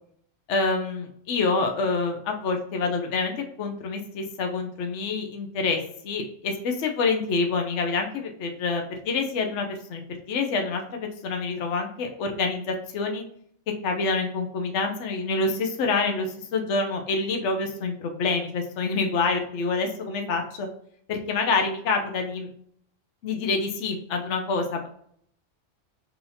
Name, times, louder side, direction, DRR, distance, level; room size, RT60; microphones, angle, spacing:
voice 1, 0.5-10.0 10.3-13.2 13.8-20.7 21.1-22.5 23.2-24.9, left 4 dB, 70° left, 3 dB, 1.0 m, -27 dB
5.5 x 2.8 x 2.7 m, 0.65 s
omnidirectional pair, 1.3 m